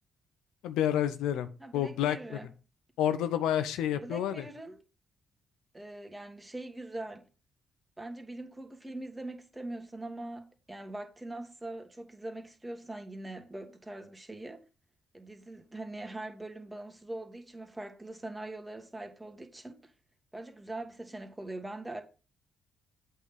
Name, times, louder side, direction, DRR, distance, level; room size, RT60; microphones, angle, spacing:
voice 1, 0.6-1.5 1.7-2.2 3.0-4.4, left 10 dB, 75° left, 0.5 m, -29 dB
voice 2, 1.6-2.5 3.9-4.8 5.7-7.2 8.0-14.6 15.1-19.9 20.3-22.0, right 2 dB, 15° right, 1.7 m, -42 dB
8.2 x 3.7 x 6.0 m
hypercardioid pair, 45°, 0 cm